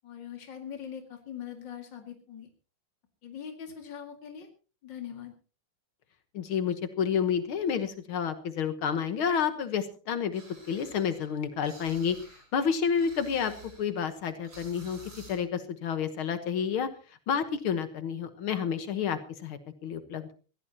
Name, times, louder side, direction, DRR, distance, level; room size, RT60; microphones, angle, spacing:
voice 1, 0.0-2.5 3.2-4.5 4.8-5.3, left 8 dB, 60° left, 4 dB, 2.9 m, -42 dB
voice 2, 6.3-10.4 10.7-12.2 12.5-13.5 13.8-15.0 15.3-16.9 17.3-20.3, left 7 dB, 80° left, 9 dB, 2.1 m, -29 dB
sound 1, 10.3-12.5 12.8-15.4, right 2 dB, 85° right, 5.8 m, -52 dB
22.5 x 16.0 x 2.9 m, 0.36 s
omnidirectional pair, 2.3 m